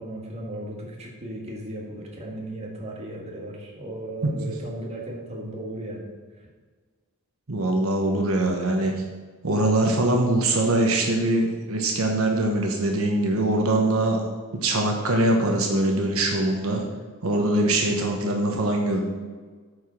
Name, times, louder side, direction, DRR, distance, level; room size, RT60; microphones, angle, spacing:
voice 1, 0.0-6.1 6.4-6.5, right 1 dB, 30° right, -1 dB, 1.6 m, -36 dB
voice 2, 7.5-8.9 9.4-14.2 14.6-16.8 17.2-19.0, right 1 dB, 70° right, 1 dB, 1.1 m, -22 dB
8.9 x 4.9 x 5.8 m, 1.5 s
head